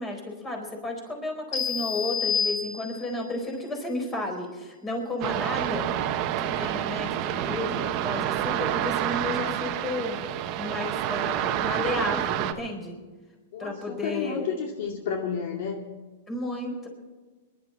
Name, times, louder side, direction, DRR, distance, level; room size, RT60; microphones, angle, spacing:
voice 1, 0.0-6.0 6.4-13.0 13.6-14.5 16.3-16.9, left 2 dB, 15° left, 3 dB, 4.5 m, -33 dB
sound 1, 1.5-3.2, left 6 dB, 35° left, 6.0 m, -29 dB
sound 2, 5.2-12.5, right 11 dB, 35° right, 1.2 m, -28 dB
voice 2, 13.5-15.9, left 6 dB, 55° left, 2 dB, 2.4 m, -31 dB
22.0 x 12.0 x 4.4 m, 1.3 s
supercardioid pair, 150°, 0 cm